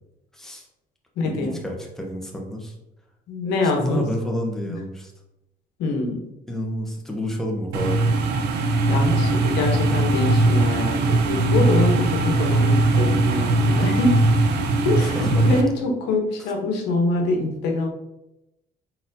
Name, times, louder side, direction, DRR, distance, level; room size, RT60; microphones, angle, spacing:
voice 1, 0.3-0.6 1.2-2.7 3.8-5.1 6.5-8.2 15.0-15.5, equal, 5° left, -1 dB, 0.9 m, -29 dB
voice 2, 1.2-1.6 3.3-4.1 4.6-4.8 5.8-6.2 8.9-14.1 14.8-17.9, left 2 dB, 90° left, 2 dB, 1.0 m, -24 dB
sound 1, 7.7-15.6, right 2 dB, 85° right, 0.7 m, -20 dB
4.2 x 4.1 x 2.7 m, 0.89 s
cardioid pair, 110°, 17 cm